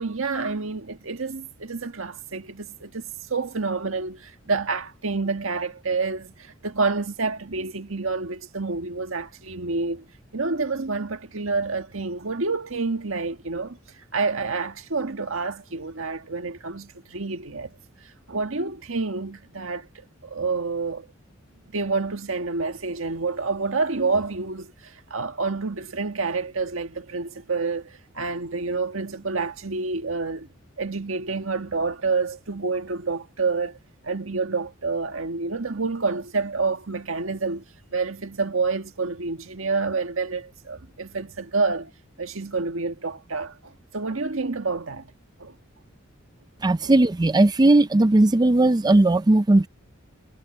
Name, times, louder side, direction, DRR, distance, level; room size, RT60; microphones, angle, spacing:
voice 1, 0.0-10.0 10.3-21.1 21.7-30.5 30.8-33.8 34.0-37.6 37.9-41.9 42.2-45.1 45.4-45.5 46.8-46.9, right 4 dB, 80° right, 1.6 m, -28 dB
voice 2, 46.6-49.7, right 2 dB, 20° right, 0.5 m, -17 dB
head